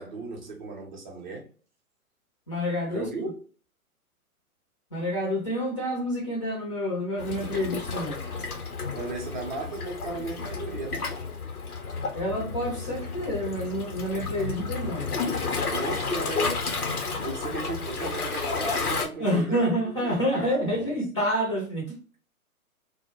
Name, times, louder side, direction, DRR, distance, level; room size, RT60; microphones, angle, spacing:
voice 1, 0.0-1.5 2.9-3.4 8.9-11.2 15.7-16.9 17.2-20.9, right 3 dB, 35° right, 0.6 m, -36 dB
voice 2, 2.5-3.3 4.9-8.2 12.1-15.1 19.2-22.0, equal, 20° left, 0.5 m, -28 dB
Waves surf, 7.2-19.1, left 4 dB, 80° left, 0.8 m, -31 dB
2.1 x 2.0 x 2.9 m
figure-of-eight pair, 120°, 44 cm